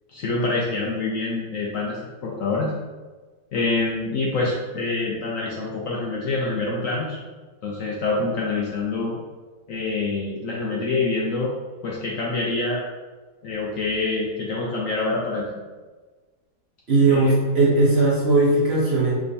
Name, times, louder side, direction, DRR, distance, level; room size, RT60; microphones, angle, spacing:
voice 1, 0.1-2.7 3.5-7.2 7.6-9.1 9.7-11.5 11.8-12.8 13.4-15.5 17.1-17.3, left 3 dB, 65° left, -3 dB, 0.8 m, -26 dB
voice 2, 16.9-19.1, right 2 dB, 45° right, -6 dB, 0.9 m, -18 dB
5.1 x 3.4 x 2.7 m, 1.3 s
omnidirectional pair, 1.8 m